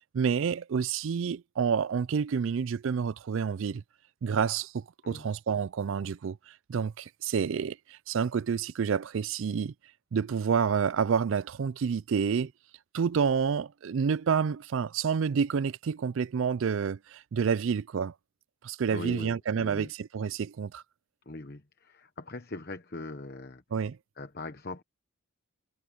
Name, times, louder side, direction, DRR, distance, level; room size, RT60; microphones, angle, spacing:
voice 1, 0.1-3.8 4.2-9.7 10.1-12.5 12.9-18.1 18.6-20.8 23.7-24.0, right 6 dB, 65° right, 0.4 m, -29 dB
voice 2, 18.9-19.9 21.3-23.6 24.2-24.8, left 2 dB, 45° left, 1.1 m, -41 dB
head